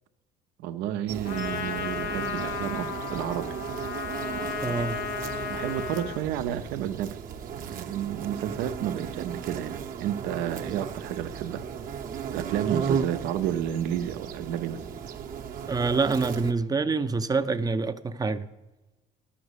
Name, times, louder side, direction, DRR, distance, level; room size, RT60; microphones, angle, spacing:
voice 1, 0.6-3.5 4.3-4.8 5.4-7.2 7.5-11.6 12.3-14.8, right 10 dB, 90° right, 0.7 m, -31 dB
sound 1, 1.1-16.5, right 7 dB, 55° right, 0.9 m, -35 dB
Trumpet, 1.2-6.3, left 9 dB, 80° left, 0.7 m, -34 dB
voice 2, 4.6-5.0 15.7-18.5, right 4 dB, 20° right, 0.5 m, -26 dB
11.5 x 6.0 x 8.1 m
cardioid pair, 110°, 17 cm